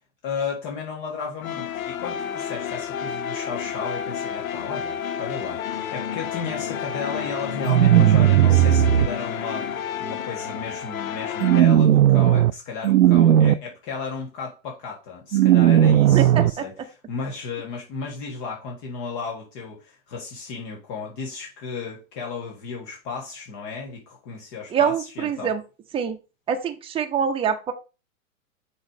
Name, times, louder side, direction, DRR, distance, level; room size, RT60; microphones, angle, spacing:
voice 1, 0.2-25.5, left 5 dB, 40° left, 1.7 m, -34 dB
sound 1, 1.4-11.6, left 8 dB, 80° left, 0.8 m, -30 dB
sound 2, 7.6-9.1 11.4-12.5 12.8-13.5 15.3-16.5, right 11 dB, 85° right, 0.5 m, -16 dB
voice 2, 16.1-16.6 24.7-25.6 25.9-26.2 26.5-27.7, right 7 dB, 15° right, 0.8 m, -24 dB
6.3 x 3.2 x 4.9 m
hypercardioid pair, 115°, 41 cm